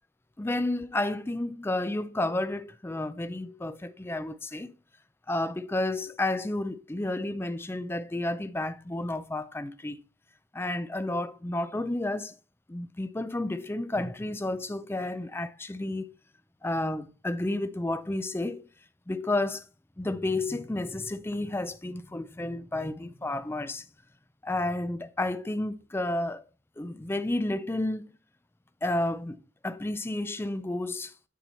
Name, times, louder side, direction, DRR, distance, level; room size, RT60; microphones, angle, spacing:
voice 1, 0.4-4.7 5.3-10.0 10.5-12.4 12.7-16.1 16.6-18.6 19.1-19.7 20.0-23.9 24.4-26.5 26.8-28.0 28.8-29.4 29.6-31.1, left 2 dB, 10° left, 0.4 m, -31 dB
9.2 x 4.5 x 4.3 m
head